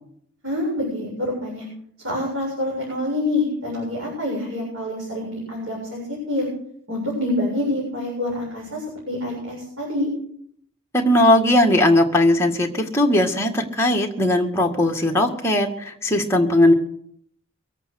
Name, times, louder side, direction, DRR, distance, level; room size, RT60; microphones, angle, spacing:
voice 1, 0.4-1.6 2.0-6.5 6.9-10.1, left 1 dB, 80° right, -4 dB, 7.5 m, -26 dB
voice 2, 10.9-16.7, left 1 dB, 15° left, 1 dB, 1.9 m, -18 dB
23.0 x 8.6 x 6.5 m, 0.66 s
head